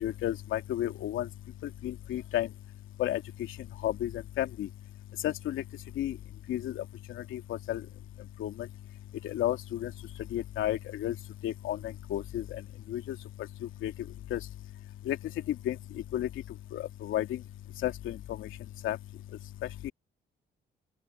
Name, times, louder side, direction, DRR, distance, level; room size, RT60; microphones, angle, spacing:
voice 1, 0.0-1.3 1.8-2.5 3.0-3.2 3.8-4.1 4.4-4.7 5.2-5.6 6.0-6.1 6.5-6.8 7.3-7.4 7.7-7.8 8.4-8.5 9.2-9.9 10.3-11.1 11.4-11.8 12.1-12.4 12.9-13.0 13.8-13.9 14.3-14.4 15.1-15.2 15.7-15.8 16.1-16.3 16.7-17.4 17.8-18.5 18.8-19.0 19.8-19.9, left 13 dB, 85° left, 2.8 m, -31 dB
open air
cardioid pair, 90°, 20 cm